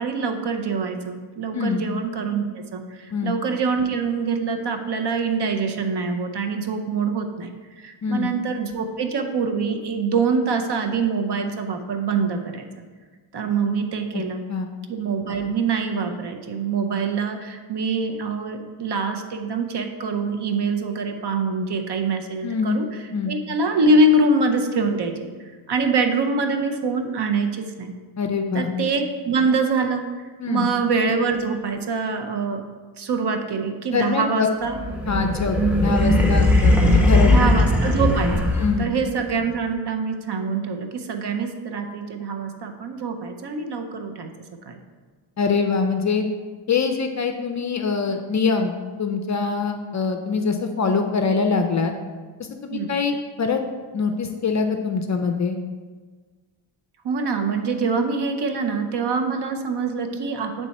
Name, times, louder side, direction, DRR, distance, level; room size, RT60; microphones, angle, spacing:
voice 1, 0.0-12.7 13.3-14.4 14.9-22.9 23.3-25.3 25.7-27.9 28.5-30.0 30.5-32.6 33.0-34.8 37.3-38.5 38.8-44.3 44.6-44.8 52.7-52.9 57.0-60.7, right 4 dB, 55° right, 6 dB, 0.7 m, -24 dB
voice 2, 22.4-22.8 23.1-23.3 28.2-28.7 30.4-30.7 33.9-34.5 35.1-35.6 35.8-37.3 38.6-38.9 45.4-46.2 46.7-51.9 52.4-53.6 53.9-55.6, left 5 dB, 40° left, 6 dB, 0.4 m, -23 dB
sound 1, 34.8-39.0, left 1 dB, 5° right, 0.7 m, -18 dB
7.5 x 3.4 x 4.1 m, 1.4 s
wide cardioid pair, 115°, 48 cm